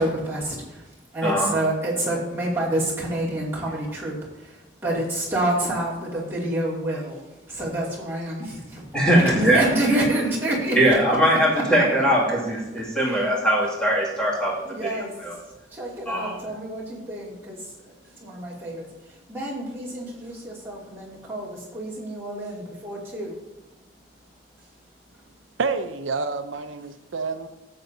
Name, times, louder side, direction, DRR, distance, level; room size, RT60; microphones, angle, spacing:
voice 1, 0.0-11.6 13.0-13.3 14.6-23.4 24.5-24.7 25.1-25.3, right 1 dB, 10° right, -7 dB, 2.5 m, -28 dB
voice 2, 1.2-1.5 8.9-9.7 10.8-15.3 16.1-16.3, right 1 dB, 5° left, -6 dB, 2.4 m, -21 dB
voice 3, 25.6-27.5, right 4 dB, 80° right, 9 dB, 0.7 m, -28 dB
13.5 x 7.7 x 2.7 m, 1.0 s
head